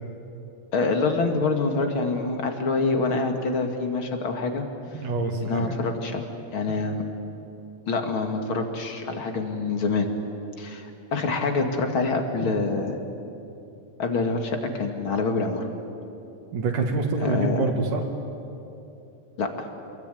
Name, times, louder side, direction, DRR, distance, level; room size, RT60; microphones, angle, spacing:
voice 1, 0.7-4.6 5.4-6.2 6.5-7.0 7.9-10.1 10.6-13.0 14.0-15.7 17.2-17.7 19.4-19.7, left 3 dB, 45° left, 4 dB, 2.6 m, -26 dB
voice 2, 4.9-5.7 16.5-18.0, right 3 dB, 80° right, 1 dB, 3.5 m, -26 dB
28.0 x 21.5 x 9.2 m, 2.8 s
omnidirectional pair, 3.5 m